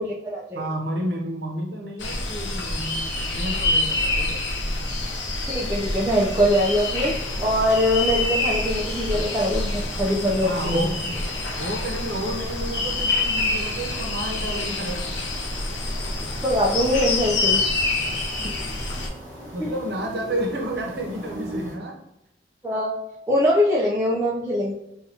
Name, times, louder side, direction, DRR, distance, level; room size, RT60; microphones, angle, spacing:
voice 1, 0.0-0.7 5.5-7.1 7.4-10.9 16.4-17.6 19.6-19.7 22.6-22.9 23.3-24.7, equal, 15° right, -6 dB, 0.4 m, -22 dB
voice 2, 0.5-4.4 10.4-11.2 11.6-15.1 19.5-22.0, right 1 dB, 65° right, 1 dB, 0.8 m, -31 dB
sound 1, 2.0-19.1, left 2 dB, 90° left, 0.7 m, -27 dB
sound 2, 7.0-21.7, equal, 10° left, 1.2 m, -40 dB
5.6 x 2.3 x 2.8 m, 0.84 s
head